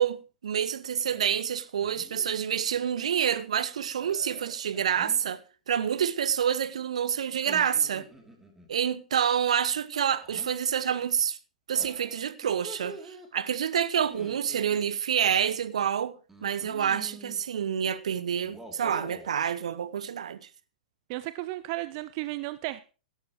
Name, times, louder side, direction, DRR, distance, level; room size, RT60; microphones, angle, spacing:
voice 1, 0.0-5.4 5.7-8.1 8.7-11.4 11.7-16.1 16.4-20.4, right 8 dB, 60° right, 1.0 m, -28 dB
sound 1, 1.0-1.4 1.8-2.3 4.0-5.3 7.3-8.7 10.1-10.5 11.7-13.3 14.0-14.8 16.3-17.4 18.4-19.4, right 1 dB, 5° right, 2.9 m, -47 dB
voice 2, 21.1-22.8, right 18 dB, 40° right, 0.5 m, -34 dB
18.0 x 12.0 x 3.1 m
figure-of-eight pair, 105°, 4 cm